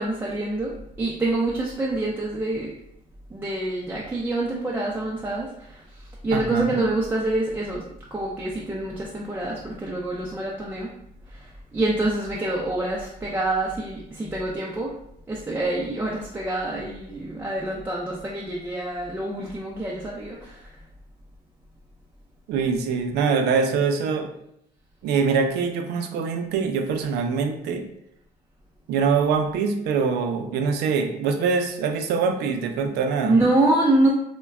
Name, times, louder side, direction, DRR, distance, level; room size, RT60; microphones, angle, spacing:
voice 1, 0.0-2.7 3.3-5.8 6.2-7.8 8.1-10.9 11.3-14.9 15.3-20.7 33.2-34.1, right 2 dB, 10° right, -4 dB, 0.4 m, -26 dB
voice 2, 6.3-6.8 22.5-24.3 25.0-27.8 28.9-33.4, right 5 dB, 80° right, 6 dB, 0.4 m, -24 dB
2.2 x 2.1 x 3.4 m, 0.76 s
cardioid pair, 110°, 17 cm